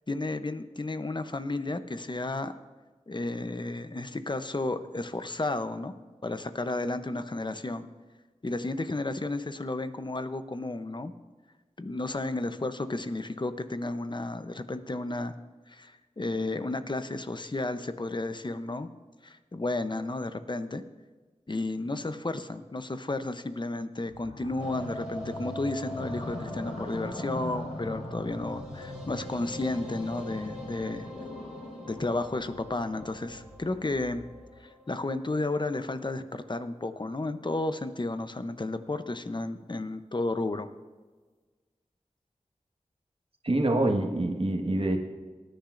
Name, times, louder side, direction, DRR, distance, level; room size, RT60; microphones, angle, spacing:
voice 1, 0.1-2.6 3.1-5.9 6.2-7.9 8.4-11.1 11.8-15.3 15.7-18.9 19.2-20.8 21.5-31.1 31.8-34.2 34.9-40.7, left 2 dB, 40° left, 10 dB, 0.8 m, -32 dB
sound 1, 24.1-34.6, left 2 dB, 80° left, 1.3 m, -42 dB
sound 2, 24.6-36.7 37.0-37.1 37.4-37.5 37.7-37.8, equal, 5° right, 4.1 m, -44 dB
voice 2, 43.4-45.0, right 1 dB, 50° right, 2 dB, 1.5 m, -26 dB
19.0 x 10.5 x 2.6 m, 1.3 s
wide cardioid pair, 45°, 12 cm